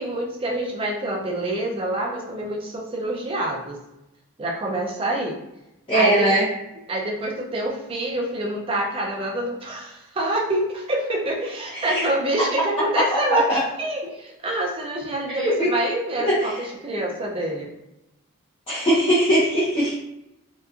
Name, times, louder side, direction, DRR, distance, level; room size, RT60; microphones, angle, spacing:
voice 1, 0.0-3.8 4.4-5.4 5.9-6.4 6.9-16.5 16.8-17.7, right 1 dB, 25° right, -1 dB, 0.4 m, -26 dB
voice 2, 5.9-6.4 11.7-12.1 13.3-13.6 15.3-15.7 16.2-16.7 18.7-19.9, right 1 dB, 25° left, -11 dB, 0.6 m, -20 dB
2.8 x 2.2 x 2.3 m, 0.90 s
head